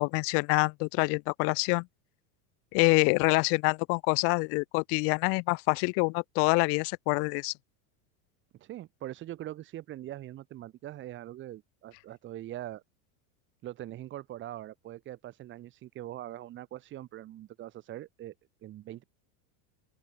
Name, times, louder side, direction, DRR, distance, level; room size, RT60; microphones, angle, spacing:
voice 1, 0.0-1.9 2.7-7.5, left 32 dB, 35° left, 0.6 m, -26 dB
voice 2, 8.5-12.8 13.6-18.3 18.6-19.0, right 13 dB, 30° right, 2.8 m, -42 dB
open air
supercardioid pair, 175°, 41 cm